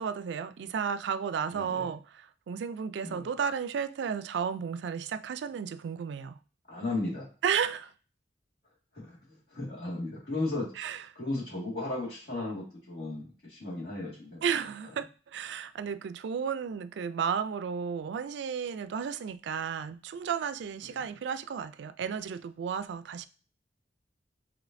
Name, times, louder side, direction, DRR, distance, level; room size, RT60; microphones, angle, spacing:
voice 1, 0.0-6.4 7.4-7.9 10.8-11.0 14.4-23.3, right 7 dB, 75° right, 0.3 m, -33 dB
voice 2, 1.5-1.9 3.0-3.3 6.7-7.3 8.9-10.9 11.2-14.9 20.8-21.1, left 2 dB, 65° left, 1.9 m, -36 dB
4.9 x 3.0 x 2.6 m
head